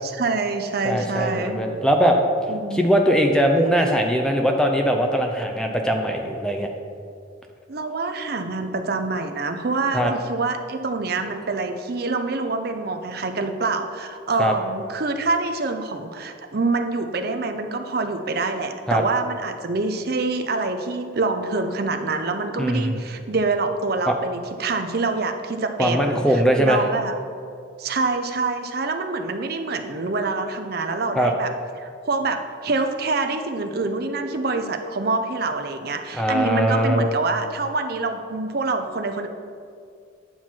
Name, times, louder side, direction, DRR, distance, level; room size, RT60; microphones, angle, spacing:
voice 1, 0.0-1.6 2.5-2.8 7.7-27.1 27.8-31.5 31.8-39.3, right 3 dB, 50° right, 7 dB, 0.6 m, -26 dB
voice 2, 0.8-2.2 2.7-6.7 9.9-10.1 14.4-14.5 18.9-19.0 22.6-22.9 24.1-24.2 25.8-26.8 31.2-31.3 36.1-37.1, equal, 5° left, 3 dB, 0.6 m, -20 dB
9.3 x 5.9 x 4.4 m, 2.4 s
head